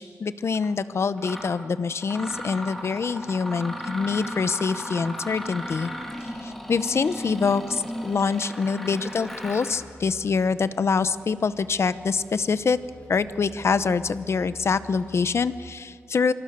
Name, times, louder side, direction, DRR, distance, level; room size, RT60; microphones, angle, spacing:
voice 1, 0.0-5.9 6.4-12.8 13.1-16.3, left 5 dB, 60° left, 14 dB, 0.9 m, -25 dB
Mechanisms, 0.5-0.7 1.2-1.6 2.0-9.8, equal, 5° left, 3.8 m, -35 dB
sound 1, 9.6-15.4, left 1 dB, 30° left, 7.8 m, -48 dB
26.0 x 25.5 x 6.7 m, 2.2 s
wide cardioid pair, 100°, 5 cm